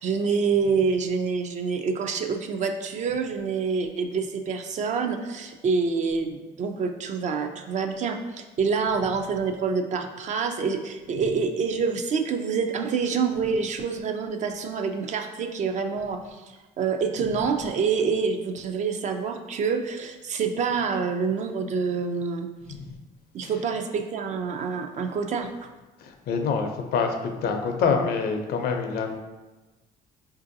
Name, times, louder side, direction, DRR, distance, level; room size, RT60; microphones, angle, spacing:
voice 1, 0.0-22.5 23.3-25.5, right 5 dB, 45° right, 6 dB, 0.4 m, -27 dB
voice 2, 26.3-27.1 27.4-29.1, left 5 dB, 65° left, 4 dB, 0.5 m, -25 dB
4.5 x 2.6 x 2.6 m, 1.1 s
cardioid pair, 110°, 17 cm